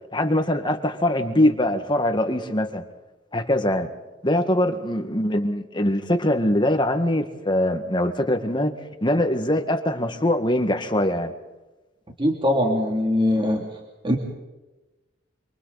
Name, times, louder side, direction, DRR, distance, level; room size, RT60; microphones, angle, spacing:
voice 1, 0.1-2.8 3.3-3.9 4.2-8.7 9.0-11.3, left 1 dB, 25° left, 6 dB, 1.9 m, -22 dB
voice 2, 12.2-13.6 14.0-14.2, left 1 dB, 25° right, 0 dB, 2.9 m, -21 dB
27.5 x 26.5 x 4.2 m, 1.1 s
head